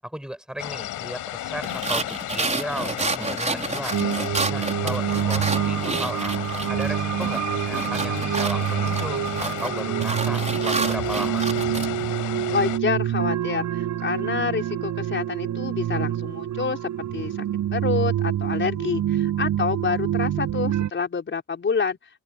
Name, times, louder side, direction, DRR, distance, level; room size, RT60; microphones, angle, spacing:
voice 1, 0.0-4.1 4.5-6.4 6.7-11.4, equal, ahead, 6.1 m, -35 dB
sound 1, 0.6-12.8, left 14 dB, 85° left, 7.5 m, -33 dB
sound 2, 1.6-6.9 7.2-11.9, right 3 dB, 25° right, 5.2 m, -30 dB
sound 3, 3.9-20.9, right 11 dB, 75° right, 6.3 m, -26 dB
voice 2, 12.5-17.4 17.7-22.0, left 5 dB, 40° left, 4.6 m, -27 dB
open air
cardioid pair, 90°, 30 cm